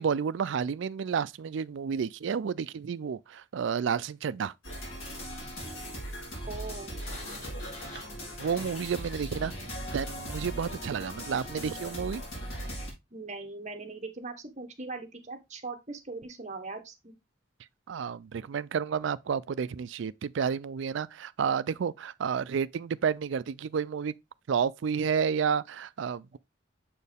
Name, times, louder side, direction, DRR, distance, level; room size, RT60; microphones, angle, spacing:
voice 1, 0.0-4.5 8.4-9.5 9.9-12.2 17.9-24.1 24.5-26.4, right 6 dB, 65° right, 0.4 m, -30 dB
sound 1, 4.6-12.9, equal, 80° left, 3.1 m, -39 dB
voice 2, 6.5-7.0 13.1-17.1, right 3 dB, 35° right, 1.1 m, -40 dB
Sliding door, 6.9-9.7, left 1 dB, 60° left, 3.1 m, -47 dB
7.2 x 4.5 x 3.4 m
head